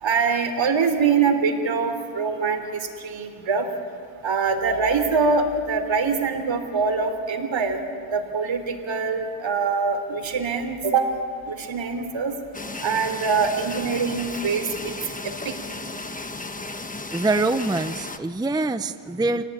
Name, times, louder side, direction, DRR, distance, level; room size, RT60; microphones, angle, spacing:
voice 1, 0.0-3.7 4.2-7.8 8.1-11.1 11.5-12.3 12.8-14.9 15.2-15.6, right 5 dB, 65° right, 5 dB, 3.5 m, -24 dB
sound 1, 12.5-18.2, left 2 dB, 15° left, 1.2 m, -35 dB
voice 2, 17.1-19.4, right 2 dB, 10° right, 10 dB, 0.6 m, -24 dB
29.0 x 18.0 x 9.6 m, 2.3 s
cardioid pair, 110°, 49 cm